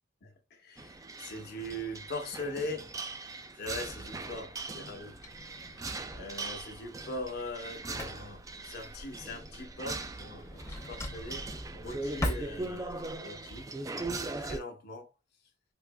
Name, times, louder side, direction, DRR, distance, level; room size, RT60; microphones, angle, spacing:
voice 1, 0.2-3.0 3.5-5.2 6.1-13.7 14.4-15.1, left 1 dB, 55° left, 0.9 m, -41 dB
sound 1, 0.8-14.6, right 3 dB, 15° right, 0.3 m, -40 dB
Drawer open or close, 3.8-13.2, equal, 15° left, 0.6 m, -42 dB
4.6 x 2.8 x 2.2 m
head